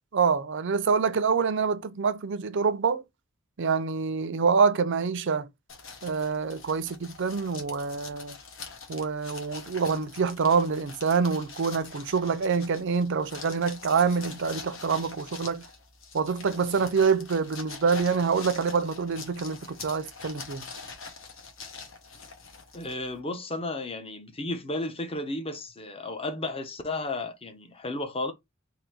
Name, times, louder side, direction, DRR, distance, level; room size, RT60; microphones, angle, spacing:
voice 1, 0.1-3.0 3.6-5.5 6.0-8.4 8.9-15.7 16.1-20.6, right 5 dB, 60° right, 0.5 m, -26 dB
sound 1, 5.7-23.2, left 5 dB, 65° left, 1.2 m, -44 dB
voice 2, 22.7-28.3, left 2 dB, 25° left, 0.8 m, -33 dB
3.9 x 2.7 x 4.6 m
head